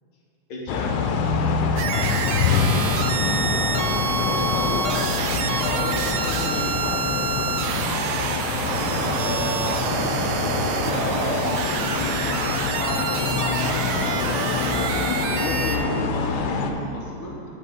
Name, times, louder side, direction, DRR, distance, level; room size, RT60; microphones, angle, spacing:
voice 1, 0.5-1.1 1.4-1.5 4.3-7.4 9.2-10.2 10.5-12.5 12.8-14.8 15.3-17.4, left 2 dB, 65° left, -3 dB, 1.3 m, -33 dB
sound 1, 0.7-16.7, left 5 dB, 80° left, 2.0 m, -25 dB
sound 2, 1.8-15.8, right 6 dB, 80° right, 1.7 m, -27 dB
Wind, 7.9-11.4 12.0-13.0 13.8-13.9, left 1 dB, 20° right, 1.6 m, -45 dB
10.5 x 6.1 x 3.7 m, 2.9 s
omnidirectional pair, 3.5 m